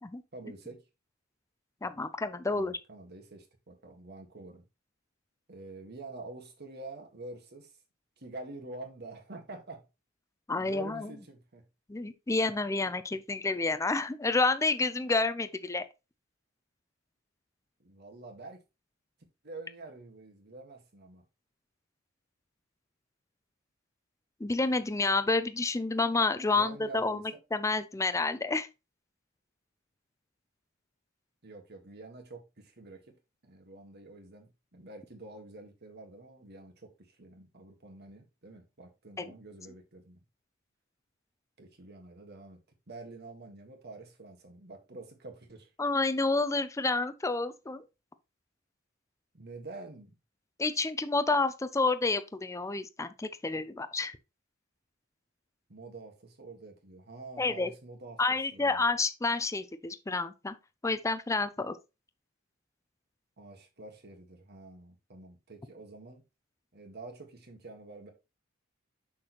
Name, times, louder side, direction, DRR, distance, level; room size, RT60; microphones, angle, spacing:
voice 1, 0.3-0.8 2.5-4.6 5.5-7.8 8.2-9.9 10.6-11.6 17.8-18.6 19.4-21.2 26.5-27.4 31.4-33.2 33.4-40.2 41.6-42.6 42.9-45.7 49.3-50.1 55.7-58.2 58.5-58.8 63.4-66.2 66.7-68.1, right 2 dB, 55° right, 1.6 m, -47 dB
voice 2, 1.8-2.8 10.5-11.1 11.9-15.8 24.4-27.2 27.5-28.7 45.8-47.8 50.6-54.2 57.4-57.7 58.2-60.5 60.8-61.8, left 3 dB, 15° left, 0.5 m, -29 dB
6.2 x 6.2 x 3.0 m
head